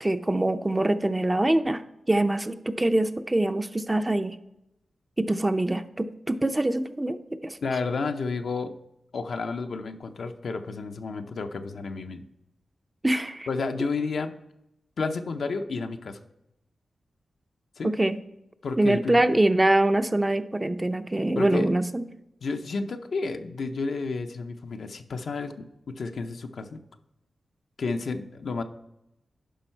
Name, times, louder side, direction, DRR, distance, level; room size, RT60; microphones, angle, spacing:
voice 1, 0.0-4.4 5.2-7.6 13.0-13.5 17.8-18.2 18.8-22.0, right 1 dB, 20° right, 9 dB, 0.5 m, -24 dB
voice 2, 7.6-8.7 9.1-12.2 13.5-14.3 15.0-16.2 17.8-17.9 18.6-19.2 21.4-21.7 22.4-26.8 27.8-28.6, left 4 dB, 75° left, 6 dB, 0.6 m, -31 dB
10.0 x 5.3 x 4.4 m, 0.86 s
cardioid pair, 50°, 0 cm